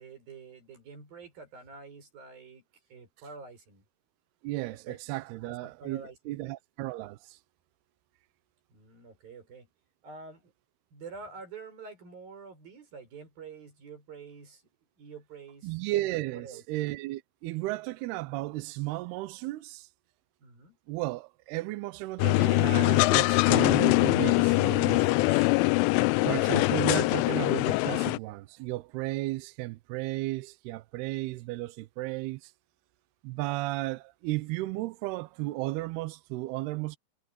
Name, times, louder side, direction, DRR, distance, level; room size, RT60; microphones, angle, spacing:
voice 1, 0.0-2.6 2.9-3.8 4.9-5.0 5.4-6.5 8.7-9.7 10.0-10.5 10.9-14.6 15.0-15.8 16.3-16.6 20.4-20.8, right 4 dB, 50° right, 8.4 m, -47 dB
voice 2, 4.4-7.4 15.6-19.9 20.9-25.5 26.2-32.5 33.2-37.0, right 19 dB, 85° right, 2.3 m, -34 dB
sound 1, 22.2-28.2, left 23 dB, 85° left, 3.0 m, -23 dB
omnidirectional pair, 5.5 m